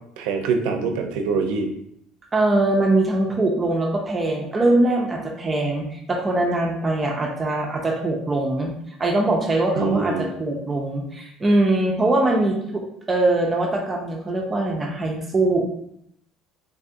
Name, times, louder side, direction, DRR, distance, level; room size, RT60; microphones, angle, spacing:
voice 1, 0.2-1.7 9.8-10.3, right 4 dB, 90° right, 5 dB, 0.4 m, -24 dB
voice 2, 2.3-12.8 13.1-15.6, right 2 dB, 15° right, 0 dB, 0.3 m, -22 dB
3.5 x 2.3 x 2.6 m, 0.74 s
cardioid pair, 175°, 0 cm